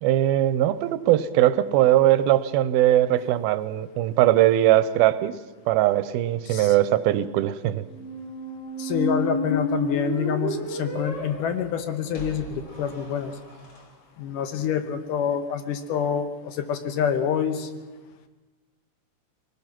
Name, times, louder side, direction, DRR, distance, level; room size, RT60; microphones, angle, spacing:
voice 1, 0.0-5.4 5.7-7.8, right 13 dB, 90° right, 14 dB, 2.7 m, -20 dB
Squeak, 7.9-13.8, equal, 30° left, 2.9 m, -31 dB
voice 2, 8.8-13.4 14.2-17.7, left 8 dB, 70° left, 8 dB, 2.5 m, -27 dB
23.0 x 19.0 x 6.0 m, 1.2 s
omnidirectional pair, 4.2 m